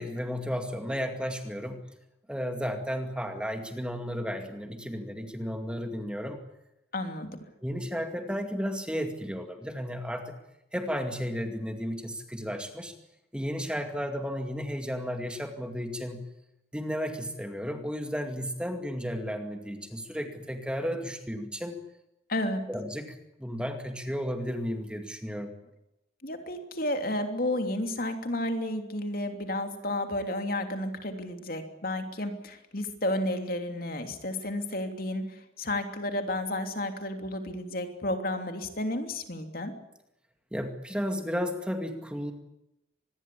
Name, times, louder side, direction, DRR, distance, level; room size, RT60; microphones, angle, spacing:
voice 1, 0.0-1.8 2.3-6.4 7.6-10.3 10.7-12.9 13.3-16.2 16.7-21.8 22.7-25.5 40.5-42.3, equal, 5° right, 5 dB, 2.3 m, -33 dB
voice 2, 6.9-7.3 22.3-22.6 26.2-39.7, left 1 dB, 50° left, 6 dB, 3.1 m, -32 dB
25.5 x 21.0 x 8.6 m, 0.85 s
head